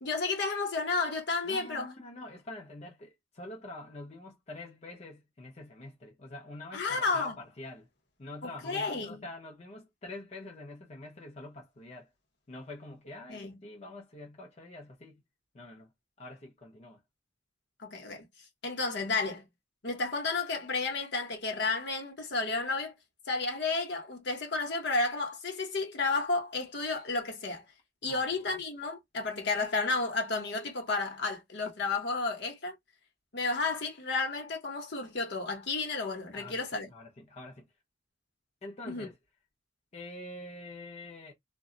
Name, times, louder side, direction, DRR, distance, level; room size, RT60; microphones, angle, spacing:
voice 1, 0.0-1.9 6.7-7.4 8.4-9.2 13.3-13.5 17.8-18.3 18.6-19.4 19.8-22.9 23.3-27.6 28.0-32.8 33.3-36.9 38.9-39.1, left 3 dB, 65° left, 0.9 m, -32 dB
voice 2, 1.4-7.9 8.2-12.1 12.5-15.2 15.5-15.9 16.2-17.0 28.1-28.2 28.5-28.6 36.3-36.6 36.9-37.7 38.6-39.2 39.9-41.3, left 2 dB, 35° left, 0.7 m, -46 dB
2.2 x 2.0 x 3.7 m
head